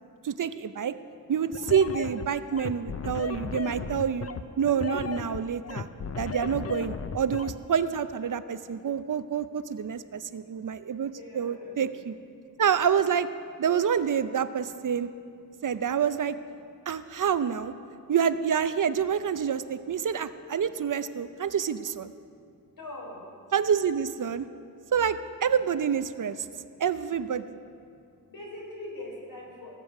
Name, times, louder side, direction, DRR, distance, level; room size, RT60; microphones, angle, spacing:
voice 1, 0.2-0.9 1.3-4.3 4.6-5.9 6.2-12.2 12.6-13.3 13.6-15.1 15.6-16.4 16.9-17.7 18.1-22.1 23.5-24.5 24.9-26.5 26.8-27.4, right 7 dB, 60° right, 13 dB, 0.6 m, -27 dB
sound 1, 1.5-7.5, left 5 dB, 40° left, 0.6 m, -35 dB
voice 2, 11.0-11.8 22.8-23.2 28.3-29.8, left 1 dB, 75° left, -3 dB, 3.9 m, -42 dB
18.0 x 7.6 x 6.4 m, 2.4 s
wide cardioid pair, 85°, 36 cm